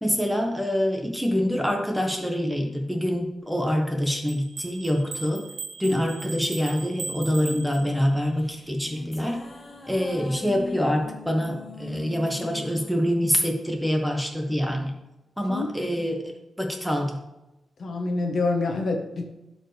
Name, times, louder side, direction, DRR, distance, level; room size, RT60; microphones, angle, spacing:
voice 1, 0.0-5.4 5.8-9.4 9.9-15.0 15.4-16.2 16.6-17.2, equal, ahead, 2 dB, 1.1 m, -25 dB
sound 1, 4.3-8.3, right 4 dB, 65° right, 0.8 m, -38 dB
sound 2, 8.2-14.7, left 3 dB, 25° left, 1.1 m, -42 dB
voice 2, 17.8-19.3, left 3 dB, 55° left, 3 dB, 1.1 m, -26 dB
12.0 x 4.7 x 3.3 m, 0.97 s
wide cardioid pair, 130°, 0 cm